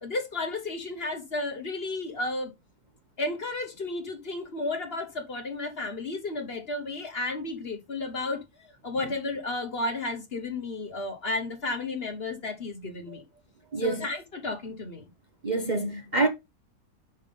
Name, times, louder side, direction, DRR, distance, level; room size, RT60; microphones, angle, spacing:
voice 1, 0.0-2.5 3.2-13.2 13.8-15.0, left 2 dB, 40° left, 1.4 m, -33 dB
voice 2, 13.7-14.0 15.4-16.3, right 3 dB, 35° right, 1.0 m, -27 dB
5.9 x 5.6 x 5.2 m
omnidirectional pair, 1.6 m